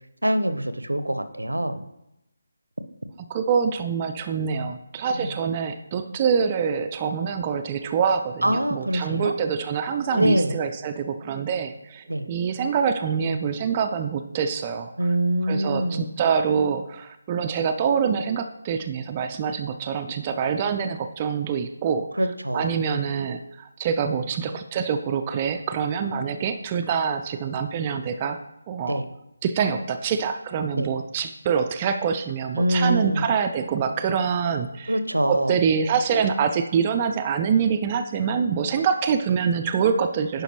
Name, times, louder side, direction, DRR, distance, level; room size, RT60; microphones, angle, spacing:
voice 1, 0.2-1.8 5.1-5.3 8.4-9.3 10.2-10.6 12.1-12.3 15.0-16.1 22.2-22.8 28.9-29.1 30.7-30.9 32.6-33.3 34.9-35.6, right 1 dB, 75° right, 10 dB, 0.6 m, -24 dB
voice 2, 3.3-14.9 15.4-22.1 22.5-28.4 28.7-29.0 29.4-34.9 35.3-40.4, right 6 dB, 20° right, 6 dB, 0.3 m, -25 dB
10.5 x 5.1 x 3.0 m, 0.87 s
figure-of-eight pair, 155°, 0 cm